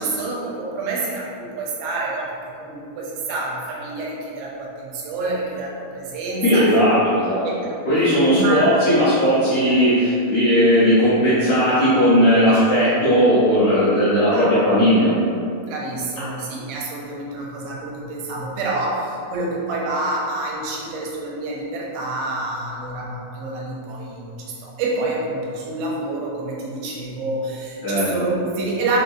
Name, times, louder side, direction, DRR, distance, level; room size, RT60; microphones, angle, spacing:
voice 1, 0.0-6.7 7.4-7.7 8.3-8.7 12.5-12.6 14.3-14.6 15.7-29.0, right 2 dB, 85° right, -4 dB, 2.5 m, -28 dB
voice 2, 6.4-7.4 7.8-15.1 27.8-28.1, equal, 70° left, -14 dB, 1.6 m, -17 dB
6.0 x 2.1 x 2.6 m, 2.5 s
omnidirectional pair, 4.2 m